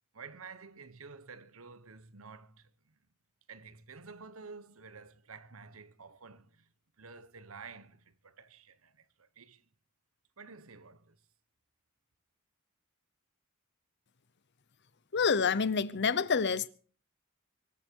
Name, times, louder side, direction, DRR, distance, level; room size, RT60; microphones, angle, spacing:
voice 1, 0.1-3.0 3.5-9.7 10.4-11.2, right 4 dB, 75° right, 1.2 m, -51 dB
voice 2, 15.1-16.7, left 5 dB, 55° left, 0.8 m, -27 dB
24.0 x 12.5 x 4.6 m
head